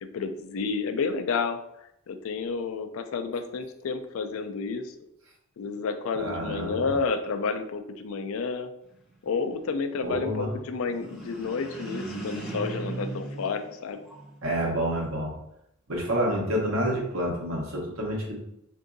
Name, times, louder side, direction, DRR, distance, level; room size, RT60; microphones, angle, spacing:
voice 1, 0.0-4.9 5.6-8.7 9.2-14.0, left 4 dB, 70° left, 8 dB, 0.4 m, -30 dB
voice 2, 6.1-6.8 10.0-10.5 14.4-15.3 15.9-18.4, equal, 65° right, -2 dB, 1.0 m, -28 dB
sound 1, 10.9-14.4, right 2 dB, 5° right, 0.7 m, -37 dB
4.6 x 2.6 x 2.6 m, 0.81 s
head